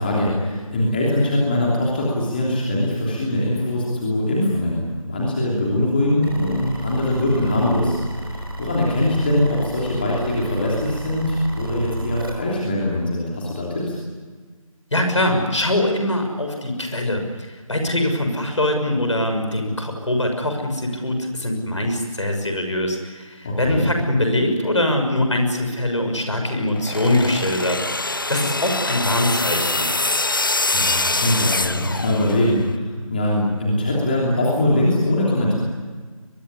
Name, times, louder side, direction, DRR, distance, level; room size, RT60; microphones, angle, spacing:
voice 1, 0.0-14.0 23.4-23.8 30.7-35.6, left 1 dB, 15° left, -4 dB, 3.1 m, -22 dB
sound 1, 6.2-12.3, right 1 dB, 40° right, 4.6 m, -32 dB
voice 2, 14.9-29.9, left 1 dB, 55° left, 5 dB, 6.4 m, -23 dB
sound 2, 26.8-32.6, left 2 dB, 35° left, 0.8 m, -24 dB
22.5 x 22.0 x 9.9 m, 1.4 s
figure-of-eight pair, 165°, 18 cm